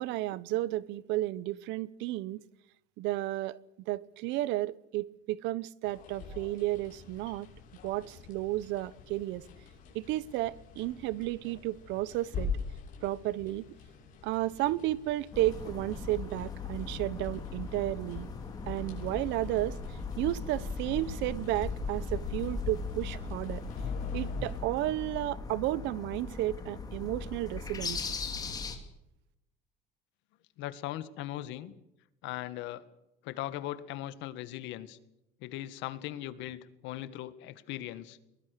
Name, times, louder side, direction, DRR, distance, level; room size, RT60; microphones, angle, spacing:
voice 1, 0.0-2.4 3.0-3.6 3.9-7.5 7.8-9.4 9.9-12.5 13.0-13.7 14.2-18.3 18.7-23.6 24.1-28.0, right 16 dB, 70° right, 0.9 m, -33 dB
sound 1, 5.8-24.6, left 5 dB, 45° left, 7.0 m, -45 dB
sound 2, 15.3-28.8, left 4 dB, 20° left, 2.8 m, -38 dB
voice 2, 30.6-31.7 32.2-32.8 33.2-35.0 35.4-38.2, left 14 dB, 70° left, 1.8 m, -39 dB
22.5 x 20.5 x 6.8 m
cardioid pair, 175°, 20 cm